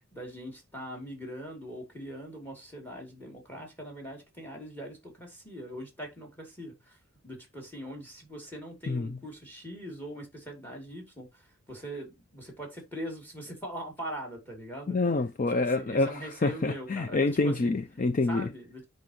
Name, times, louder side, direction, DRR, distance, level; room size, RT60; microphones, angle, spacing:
voice 1, 0.0-7.0 7.2-15.0 15.8-17.7 18.3-18.9, right 1 dB, 10° left, 2.8 m, -41 dB
voice 2, 8.9-9.2 14.9-18.5, left 3 dB, 35° left, 0.4 m, -27 dB
8.5 x 5.2 x 2.9 m
head